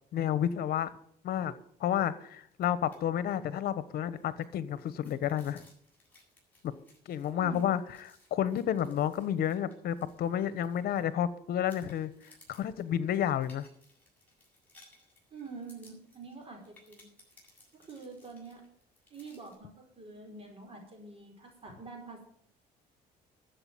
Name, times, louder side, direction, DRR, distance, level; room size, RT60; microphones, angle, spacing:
voice 1, 0.1-0.9 1.2-1.5 1.8-5.7 7.1-7.8 8.3-12.1 12.5-13.7, left 10 dB, 65° left, 15 dB, 1.2 m, -30 dB
sound 1, 2.5-3.0 3.3-3.4 3.8-11.3 11.7-19.6, left 2 dB, 10° left, 7.9 m, -62 dB
voice 2, 7.3-7.8 15.3-17.1 17.7-18.6 19.1-22.3, right 4 dB, 35° right, 2 dB, 5.1 m, -46 dB
13.0 x 8.0 x 9.3 m, 0.66 s
cardioid pair, 110°, 17 cm